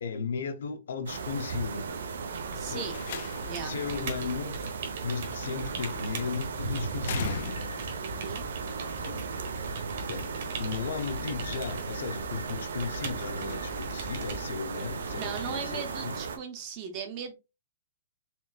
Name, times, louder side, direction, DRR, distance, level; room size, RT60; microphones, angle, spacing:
voice 1, 0.0-1.9 2.6-2.9 3.6-4.6 5.0-7.4 8.9-9.3 10.1-10.3 10.6-16.1, left 5 dB, 65° left, 0.9 m, -35 dB
sound 1, 1.1-16.4, right 5 dB, 75° right, 0.8 m, -36 dB
sound 2, 2.3-15.5, right 3 dB, 45° right, 1.3 m, -42 dB
voice 2, 2.5-3.0 3.5-3.8 8.0-8.4 15.1-17.4, right 7 dB, 25° right, 0.7 m, -38 dB
Slam, 2.7-3.7 5.2-5.7 7.0-8.0, left 9 dB, 45° left, 0.5 m, -39 dB
4.4 x 3.9 x 2.4 m
hypercardioid pair, 180°, 0 cm